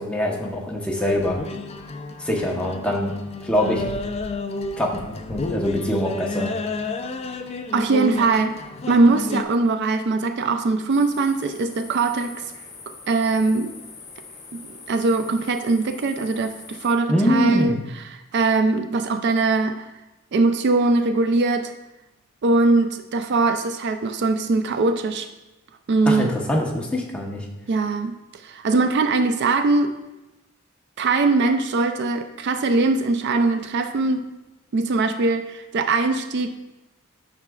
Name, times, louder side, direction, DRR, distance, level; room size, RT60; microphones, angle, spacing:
voice 1, 0.0-1.4 2.2-3.1 3.4-3.9 4.8-6.5 17.1-17.8 26.1-27.4, left 1 dB, 5° left, -2 dB, 0.9 m, -23 dB
sound 1, 1.0-9.4, left 3 dB, 30° left, 0.4 m, -31 dB
voice 2, 7.7-8.6 8.9-12.4 12.9-13.7 14.5-19.9 20.3-21.7 22.4-25.3 25.9-26.3 27.7-28.2 28.4-30.0 31.0-34.2 34.7-36.5, right 3 dB, 55° right, 8 dB, 0.4 m, -21 dB
sound 2, 10.9-17.0, left 4 dB, 60° left, 1.8 m, -43 dB
9.5 x 5.9 x 2.3 m, 1.0 s
head